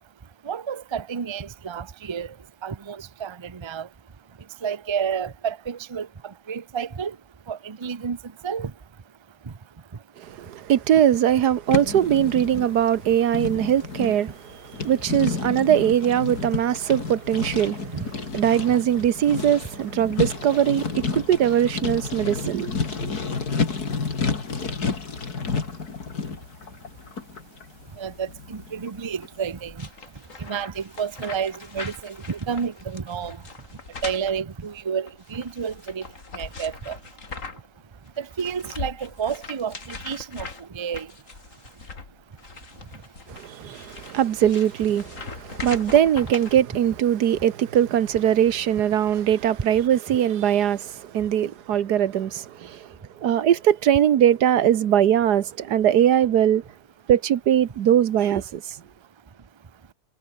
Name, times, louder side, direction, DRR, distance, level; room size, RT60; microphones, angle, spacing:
voice 1, 0.5-2.3 2.6-3.9 4.6-6.1 6.5-7.1 7.5-8.2 8.4-8.7 15.1-15.2 17.9-18.1 28.0-29.9 30.4-33.4 34.0-36.0 36.4-37.0 38.2-40.5 40.7-41.1, right 7 dB, 30° right, 0.5 m, -30 dB
voice 2, 10.2-18.0 18.3-23.1 43.3-52.9 53.2-56.6 57.1-58.6, right 10 dB, 90° right, 1.6 m, -21 dB
sound 1, 11.7-29.3, left 4 dB, 70° left, 3.2 m, -30 dB
sound 2, 29.7-37.8 38.1-46.5, left 4 dB, 55° left, 2.9 m, -40 dB
omnidirectional pair, 1.7 m